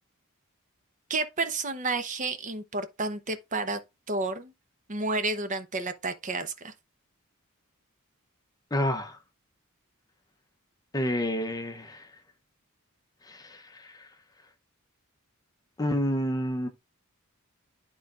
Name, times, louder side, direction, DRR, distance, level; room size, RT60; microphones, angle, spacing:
voice 1, 1.1-3.8 4.1-4.5 4.9-6.7, right 3 dB, 35° right, 0.7 m, -31 dB
voice 2, 8.7-9.2 10.9-12.0 13.3-13.6 15.8-16.7, left 1 dB, 15° left, 0.6 m, -28 dB
12.0 x 4.0 x 2.4 m
head